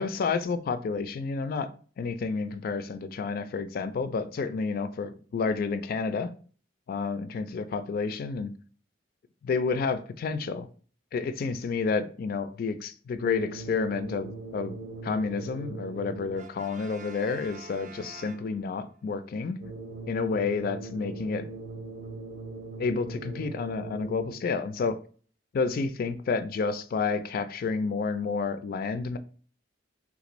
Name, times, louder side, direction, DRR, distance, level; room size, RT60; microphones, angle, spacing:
voice 1, 0.0-1.7 2.0-6.3 6.9-8.5 9.4-10.7 11.1-14.8 15.0-19.6 20.1-21.5 22.8-25.0 25.5-29.2, left 4 dB, 50° left, 0.3 m, -30 dB
sound 1, 13.2-16.6 19.6-24.6, right 3 dB, 90° right, 0.7 m, -40 dB
Brass instrument, 16.3-19.0, right 5 dB, 45° right, 0.3 m, -47 dB
3.5 x 2.5 x 2.9 m
head